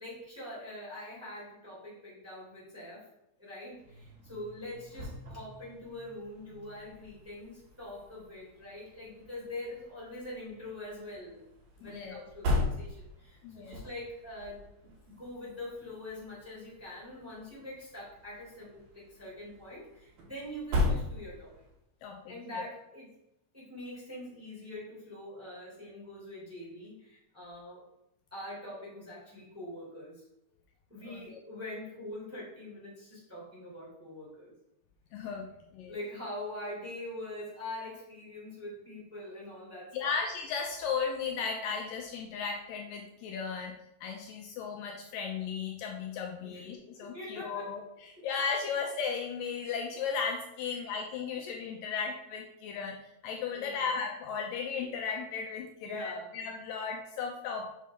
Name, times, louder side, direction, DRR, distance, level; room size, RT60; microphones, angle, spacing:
voice 1, 0.0-3.1 3.4-11.4 11.8-14.6 15.0-21.5 22.3-23.1 23.5-27.8 28.3-30.2 30.9-34.5 35.8-40.2 46.4-46.6 47.0-47.8 48.2-48.3 50.7-50.9 53.5-53.9 55.8-56.3, left 1 dB, 5° right, -7 dB, 2.4 m, -44 dB
sound 1, 3.7-21.8, left 2 dB, 80° right, 3.8 m, -39 dB
voice 2, 11.8-12.2 13.4-13.8 22.0-22.7 31.1-31.4 35.1-35.5 35.7-35.9 39.9-43.7 44.0-57.7, left 6 dB, 80° left, 2 dB, 2.2 m, -35 dB
7.3 x 5.9 x 3.5 m, 0.81 s
omnidirectional pair, 4.2 m